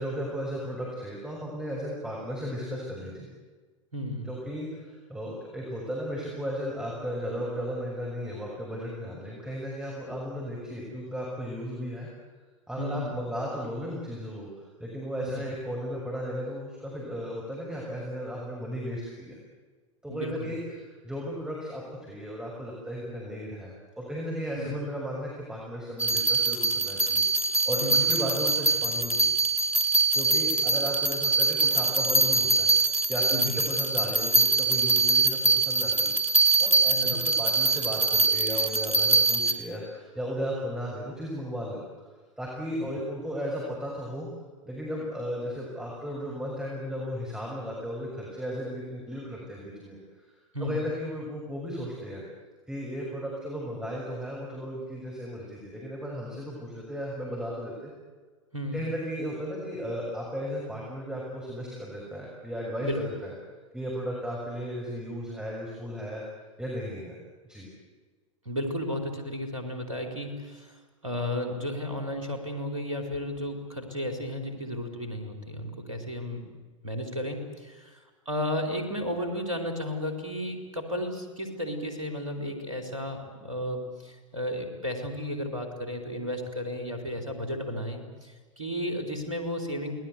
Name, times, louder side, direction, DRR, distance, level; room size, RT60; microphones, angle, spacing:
voice 1, 0.0-3.3 4.2-12.1 12.7-19.4 20.0-27.2 27.5-29.4 30.1-32.7 33.1-36.1 36.6-42.1 42.4-44.3 44.7-50.2 50.6-52.2 52.7-57.9 58.7-63.3 63.7-66.2 66.6-67.2 67.5-67.7, equal, 5° right, -4 dB, 6.4 m, -35 dB
voice 2, 3.9-4.4 12.8-13.2 15.2-15.5 20.1-20.5 24.5-24.8 27.8-28.0 33.3-33.6 37.0-37.2 42.8-43.0 50.5-50.8 58.5-58.9 62.8-63.0 68.4-76.4 76.8-89.9, left 1 dB, 75° right, 4 dB, 4.6 m, -33 dB
sound 1, 26.0-39.5, right 3 dB, 90° left, 2.2 m, -24 dB
28.5 x 20.5 x 8.2 m, 1.4 s
figure-of-eight pair, 90°, 17 cm